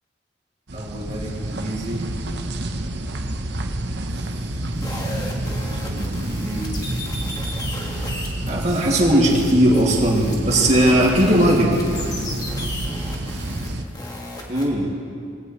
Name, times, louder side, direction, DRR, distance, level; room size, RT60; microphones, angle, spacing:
voice 1, 0.7-2.1 5.8-7.0 8.5-11.8 14.5-14.9, right 1 dB, 40° right, -2 dB, 2.4 m, -20 dB
sound 1, 0.7-13.8, right 1 dB, 70° right, 1.0 m, -28 dB
sound 2, 4.7-14.6, left 1 dB, 20° left, 1.7 m, -35 dB
20.5 x 16.5 x 3.2 m, 2.4 s
head